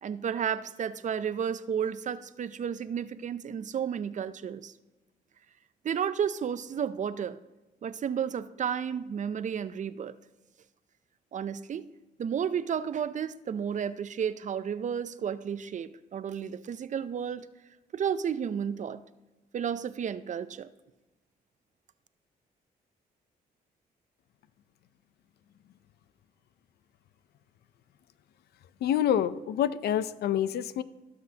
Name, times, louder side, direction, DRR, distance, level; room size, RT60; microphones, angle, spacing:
voice 1, 0.0-4.7 5.8-7.4 7.8-10.2 11.3-11.9 12.2-17.5 17.9-19.0 19.5-20.7, right 8 dB, 50° right, 14 dB, 0.5 m, -32 dB
voice 2, 28.8-30.8, left 10 dB, 75° left, 14 dB, 0.5 m, -27 dB
17.0 x 6.0 x 2.8 m, 1.1 s
supercardioid pair, 65°, 17 cm